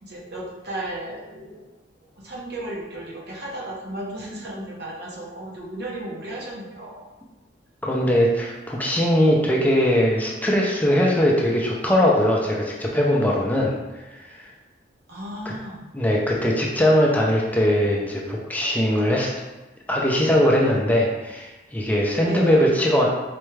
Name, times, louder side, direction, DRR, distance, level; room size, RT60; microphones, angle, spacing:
voice 1, 0.0-1.7 2.2-7.1 15.1-15.9 22.2-22.6, right 1 dB, 65° right, -2 dB, 0.8 m, -34 dB
voice 2, 7.8-13.8 14.1-14.4 15.4-15.5 15.9-19.3 19.9-23.1, equal, 10° left, -3 dB, 0.4 m, -20 dB
4.2 x 2.3 x 3.2 m, 1.1 s
head